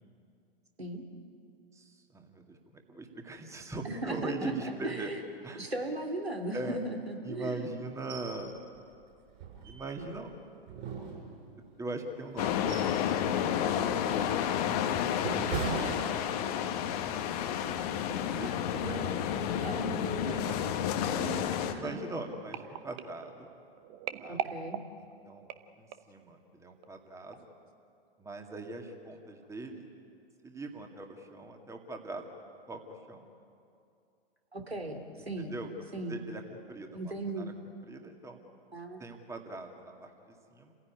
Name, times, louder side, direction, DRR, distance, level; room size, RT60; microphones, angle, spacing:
voice 1, 1.7-5.1 5.4-5.6 6.5-6.8 7.2-8.6 9.6-10.3 11.8-12.8 13.0-13.6 14.1-15.3 15.6-16.7 18.0-19.1 20.3-20.7 21.7-23.5 24.2-24.4 25.0-25.5 25.8-27.5 28.2-29.9 30.4-32.3 32.7-33.3 35.2-37.5 37.9-38.4 39.0-40.7, right 2 dB, 10° right, 4 dB, 2.2 m, -41 dB
voice 2, 3.8-5.2 5.6-7.7 18.1-18.3 18.6-20.8 21.1-22.0 24.3-24.8 34.5-35.5 35.9-36.2 36.9-37.5 38.7-39.0, right 2 dB, 85° right, 2 dB, 3.0 m, -38 dB
sound 1, 8.1-8.4 8.8-8.9 9.3-10.2 10.7-11.7 12.3-13.1 13.5-13.7 14.3-16.7 17.1-17.3, right 6 dB, 50° right, 7.2 m, -39 dB
sound 2, 12.4-21.7, left 9 dB, 40° left, 1.5 m, -31 dB
sound 3, 21.2-26.2 26.8-27.1 27.3-27.4, right 10 dB, 30° right, 1.0 m, -42 dB
28.5 x 16.0 x 9.7 m, 2.5 s
figure-of-eight pair, 105°, 31 cm